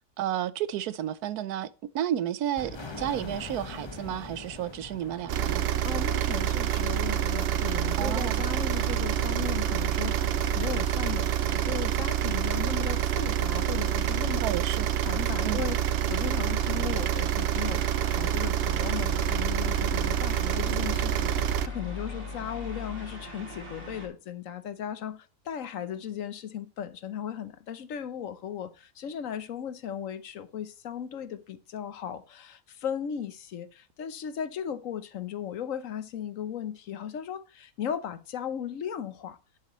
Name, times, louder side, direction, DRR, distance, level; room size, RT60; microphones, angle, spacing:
voice 1, 0.2-1.7 1.9-5.6 8.0-8.4 14.4-14.9 15.4-15.6, right 11 dB, 90° right, 1.2 m, -31 dB
sound 1, 2.6-7.2, left 2 dB, 20° left, 1.1 m, -43 dB
sound 2, 5.0-24.1, left 2 dB, 40° right, 3.0 m, -41 dB
sound 3, 5.3-21.7, right 11 dB, 60° right, 0.6 m, -27 dB
voice 2, 5.8-14.4 15.0-39.4, left 9 dB, 65° left, 1.2 m, -37 dB
10.5 x 8.5 x 3.0 m
omnidirectional pair, 1.6 m